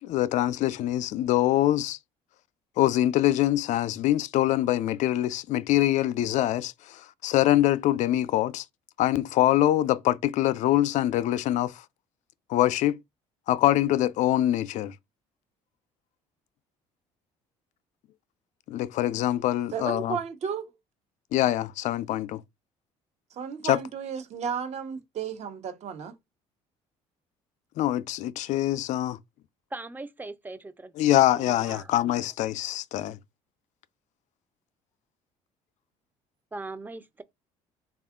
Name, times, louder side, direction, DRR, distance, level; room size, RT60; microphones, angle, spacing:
voice 1, 0.0-2.0 2.8-8.7 9.0-11.8 12.5-13.0 13.5-15.0 18.7-20.2 21.3-22.4 23.6-23.8 27.8-29.2 31.0-33.2, left 14 dB, 65° left, 0.4 m, -24 dB
voice 2, 19.7-20.7 23.3-26.1, right 7 dB, 55° right, 0.9 m, -33 dB
voice 3, 29.7-30.9 31.3-31.9 36.5-37.2, right 2 dB, 15° right, 0.5 m, -40 dB
3.6 x 2.4 x 3.6 m
supercardioid pair, 80°, 13 cm